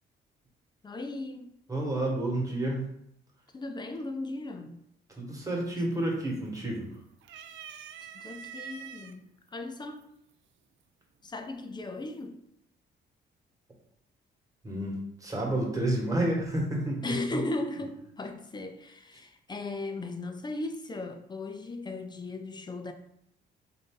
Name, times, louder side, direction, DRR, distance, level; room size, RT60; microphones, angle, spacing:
voice 1, 0.8-1.6 3.5-4.8 8.1-9.3 9.5-10.0 11.2-12.4 17.0-22.9, left 2 dB, 20° left, 0.5 m, -37 dB
voice 2, 1.7-2.9 5.2-6.9 14.6-17.0, right 1 dB, 15° right, 1.4 m, -30 dB
sound 1, 5.3-5.8 6.1-6.8 7.2-9.1 10.0-10.1 11.3-11.8, right 8 dB, 75° right, 0.4 m, -45 dB
3.8 x 2.7 x 3.7 m
cardioid pair, 90°, 20 cm